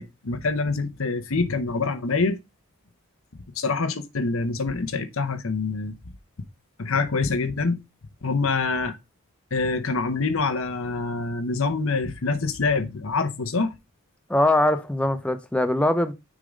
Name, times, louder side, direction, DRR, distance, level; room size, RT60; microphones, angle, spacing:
voice 1, 0.0-2.4 3.6-6.0 6.8-7.8 8.2-9.0 9.5-13.7, left 4 dB, 75° left, 0.8 m, -25 dB
voice 2, 14.3-16.1, left 1 dB, 5° left, 0.5 m, -22 dB
6.6 x 3.8 x 5.0 m
head